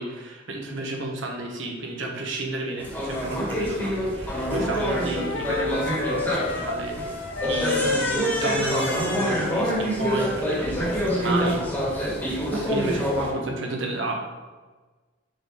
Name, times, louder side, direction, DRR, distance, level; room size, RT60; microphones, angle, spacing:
voice 1, 0.0-7.0 7.4-12.1 12.5-14.2, right 2 dB, 65° right, 0 dB, 1.1 m, -32 dB
sound 1, 2.8-13.3, equal, 10° left, 1.5 m, -26 dB
Wind instrument woodwind instrument, 4.3-9.6, left 3 dB, 75° left, 0.6 m, -31 dB
6.6 x 3.9 x 4.2 m, 1.3 s
head